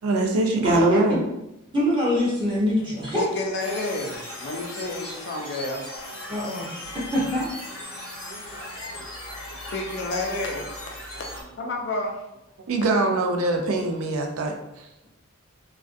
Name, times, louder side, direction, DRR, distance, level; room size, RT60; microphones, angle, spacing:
voice 1, 0.0-1.2 8.2-9.1 12.7-14.9, right 2 dB, 90° right, 3 dB, 0.4 m, -24 dB
voice 2, 0.6-1.2 1.7-3.2 6.3-6.7 7.1-7.5, equal, 25° right, -7 dB, 0.7 m, -23 dB
voice 3, 3.1-5.9 6.7-6.9 9.7-10.7 11.6-12.2, left 2 dB, 55° left, 1 dB, 0.4 m, -30 dB
sound 1, 3.6-11.4, left 1 dB, 85° left, 0.8 m, -38 dB
2.4 x 2.2 x 2.5 m, 0.89 s
head